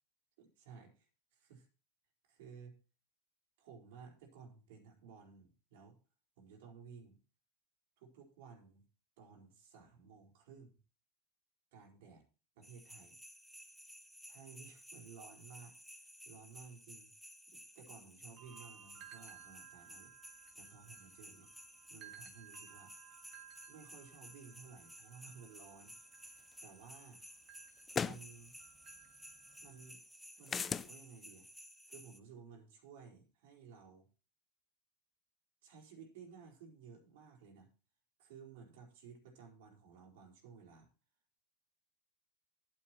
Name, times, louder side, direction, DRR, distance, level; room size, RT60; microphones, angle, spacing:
voice 1, 0.4-0.9 1.5-1.7 2.2-2.7 3.6-5.9 6.4-7.2 8.0-8.8 9.2-10.8 11.7-12.2 12.5-13.2 14.2-15.7 16.2-17.1 17.5-21.5 21.9-22.9 23.7-25.9 26.6-27.2 28.0-28.5 29.6-30.0 30.4-31.5 31.9-34.1 35.6-37.7 38.2-40.9, right 6 dB, 70° right, 2 dB, 4.5 m, -56 dB
sound 1, 12.6-32.2, equal, ahead, 1.1 m, -56 dB
sound 2, 18.4-29.9, right 10 dB, 45° right, 1.8 m, -59 dB
sound 3, 26.5-26.6 27.9-28.2 30.5-30.9, left 6 dB, 20° left, 0.5 m, -36 dB
11.5 x 8.9 x 4.5 m, 0.34 s
supercardioid pair, 135°, 0 cm